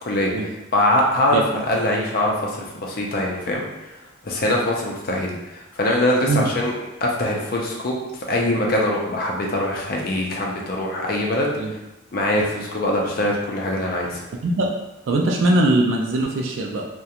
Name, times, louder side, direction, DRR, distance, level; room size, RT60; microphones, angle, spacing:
voice 1, 0.0-3.6 3.9-4.0 4.2-6.7 7.0-11.5 12.1-14.2, left 1 dB, 50° left, -1 dB, 0.5 m, -23 dB
voice 2, 15.1-16.9, right 2 dB, 75° right, 0 dB, 0.3 m, -20 dB
2.4 x 2.2 x 2.8 m, 0.97 s
head